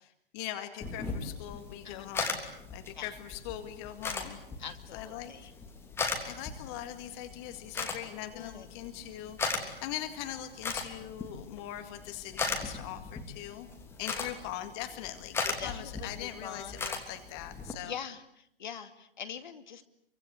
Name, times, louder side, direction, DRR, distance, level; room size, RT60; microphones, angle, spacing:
voice 1, 0.3-2.4 2.7-4.4 4.9-5.5 6.2-13.7 14.0-18.0, left 12 dB, 25° left, 8 dB, 2.0 m, -41 dB
sound 1, 0.8-17.7, left 4 dB, 10° left, 3.2 m, -38 dB
voice 2, 4.6-5.5 8.3-8.7 14.2-14.3 15.6-16.8 17.8-19.8, left 7 dB, 50° left, 9 dB, 2.5 m, -43 dB
28.0 x 24.5 x 8.3 m, 0.73 s
figure-of-eight pair, 125°, 29 cm